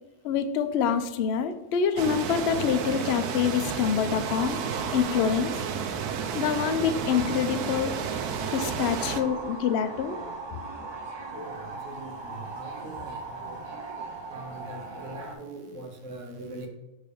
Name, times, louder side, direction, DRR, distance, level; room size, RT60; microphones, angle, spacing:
voice 1, 0.2-4.6 4.9-5.5 6.3-7.9 8.5-10.2, left 7 dB, 75° left, 9 dB, 0.5 m, -26 dB
sound 1, 2.0-9.2, right 7 dB, 80° right, 1.1 m, -32 dB
sound 2, 4.2-15.3, right 3 dB, 30° right, 0.5 m, -39 dB
voice 2, 12.6-13.1 14.3-16.7, right 2 dB, 55° right, 4 dB, 1.1 m, -41 dB
6.2 x 3.3 x 5.1 m, 1.0 s
omnidirectional pair, 1.7 m